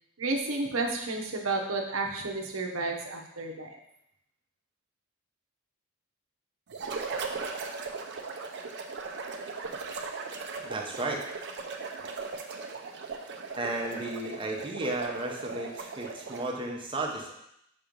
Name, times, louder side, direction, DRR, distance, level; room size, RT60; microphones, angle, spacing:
voice 1, 0.2-3.8, right 3 dB, 75° right, 2 dB, 0.9 m, -31 dB
sound 1, 6.7-16.6, right 4 dB, 55° right, 0.6 m, -38 dB
voice 2, 10.6-11.2 13.6-17.3, right 2 dB, 25° right, 0 dB, 0.9 m, -34 dB
5.9 x 3.1 x 5.2 m, 0.78 s
head